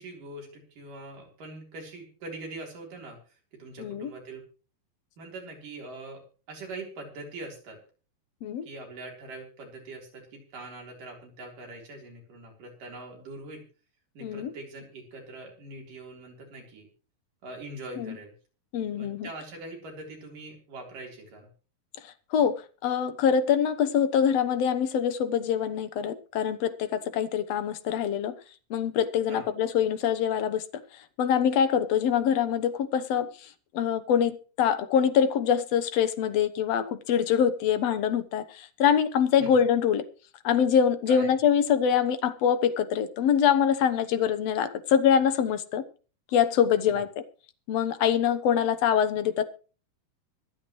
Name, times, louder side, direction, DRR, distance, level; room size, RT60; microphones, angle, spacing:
voice 1, 0.0-3.2 3.6-4.4 5.2-6.2 6.5-7.8 8.6-13.6 14.2-16.9 17.4-18.3 19.0-21.5 29.3-29.5 39.4-39.6 41.1-41.4 46.9-47.0, right 2 dB, 75° right, 5.5 m, -42 dB
voice 2, 3.8-4.1 8.4-8.7 14.2-14.5 18.0-18.1 18.7-19.3 22.3-22.5 22.8-28.3 28.7-30.6 31.2-33.3 33.7-40.0 40.4-45.8 46.3-47.1 47.7-49.4, left 8 dB, 65° left, 1.8 m, -24 dB
24.0 x 8.8 x 3.1 m
omnidirectional pair, 3.8 m